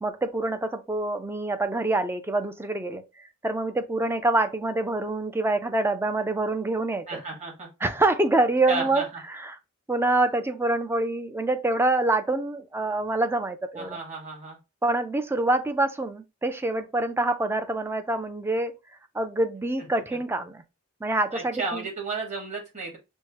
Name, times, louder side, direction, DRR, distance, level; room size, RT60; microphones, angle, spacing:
voice 1, 0.0-3.0 3.4-7.2 7.8-9.0 9.3-9.6 9.9-14.0 14.8-18.7 19.1-20.6 21.0-21.8, right 2 dB, 10° right, 0.4 m, -26 dB
voice 2, 7.1-7.7 8.7-9.0 13.7-14.6 21.3-23.0, right 3 dB, 30° right, 1.6 m, -33 dB
6.2 x 2.1 x 2.9 m
head